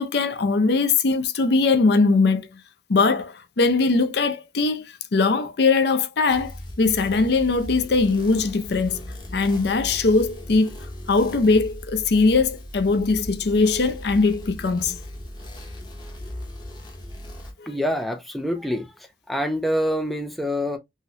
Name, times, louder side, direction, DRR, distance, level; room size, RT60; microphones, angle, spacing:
voice 1, 0.0-2.5 2.9-9.0 9.3-10.7 11.1-15.0 17.6-17.7, left 3 dB, 60° left, 0.5 m, -21 dB
sound 1, 6.3-17.5, left 1 dB, 25° left, 0.8 m, -38 dB
voice 2, 17.7-20.8, equal, ahead, 0.3 m, -26 dB
3.0 x 2.8 x 2.7 m
head